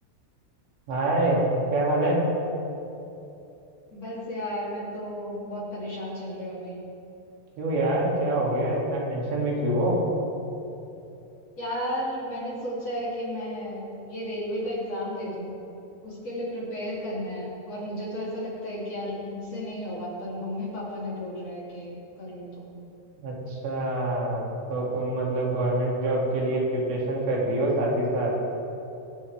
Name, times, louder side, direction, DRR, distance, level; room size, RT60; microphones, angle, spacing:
voice 1, 0.9-1.4 1.7-2.2 7.6-10.0 23.2-28.4, right 1 dB, 80° right, -4 dB, 5.1 m, -25 dB
voice 2, 3.9-6.8 11.6-15.6 16.0-22.8, equal, 40° left, -6 dB, 3.9 m, -33 dB
24.5 x 11.5 x 3.6 m, 2.9 s
omnidirectional pair, 5.0 m